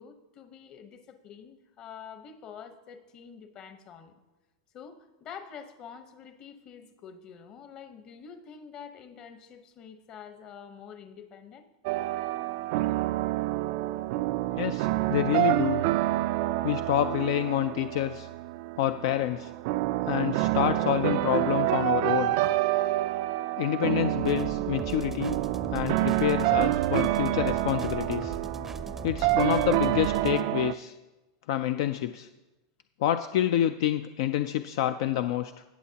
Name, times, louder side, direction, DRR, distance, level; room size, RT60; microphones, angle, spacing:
voice 1, 0.0-4.1 4.7-11.7, left 7 dB, 40° left, 9 dB, 1.0 m, -47 dB
sound 1, 11.8-30.7, right 16 dB, 60° right, 0.3 m, -28 dB
voice 2, 14.5-15.8 16.6-18.3 18.8-19.5 20.1-22.4 23.6-25.4 25.7-28.4 29.0-30.9 31.5-32.3 33.0-35.6, left 12 dB, 65° left, 9 dB, 0.4 m, -28 dB
sound 2, 24.2-30.4, right 3 dB, 10° right, 0.5 m, -39 dB
18.0 x 7.1 x 2.8 m, 1.1 s
supercardioid pair, 125°, 2 cm